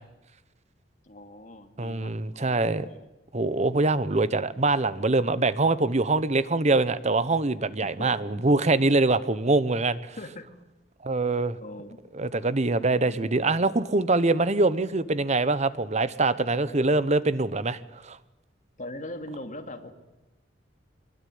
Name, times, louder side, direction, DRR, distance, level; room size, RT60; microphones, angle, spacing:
voice 1, 1.0-3.1 7.8-8.4 10.2-10.5 11.6-12.0 13.0-13.2 18.8-19.9, left 1 dB, 45° left, 6 dB, 2.8 m, -41 dB
voice 2, 1.8-2.9 3.3-10.2 11.0-11.6 12.2-17.8 18.0-18.2, right 2 dB, 40° right, 15 dB, 1.1 m, -24 dB
24.0 x 22.0 x 9.5 m, 1.0 s
head